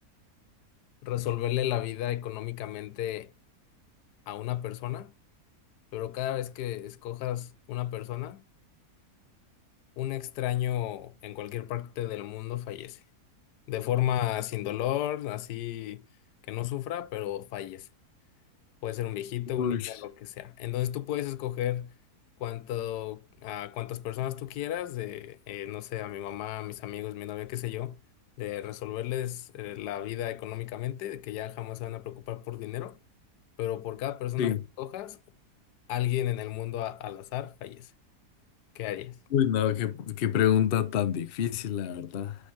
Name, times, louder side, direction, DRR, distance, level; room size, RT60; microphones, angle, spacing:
voice 1, 1.0-3.3 4.3-5.1 5.9-8.4 10.0-13.0 13.7-16.0 16.5-17.9 18.8-21.9 22.4-28.0 28.4-33.0 33.6-35.2 35.9-37.9 38.7-39.2, left 13 dB, 85° left, 1.2 m, -33 dB
voice 2, 19.5-19.9 34.4-34.6 39.3-42.4, left 9 dB, 55° left, 0.6 m, -27 dB
5.8 x 5.4 x 4.0 m
omnidirectional pair, 1.7 m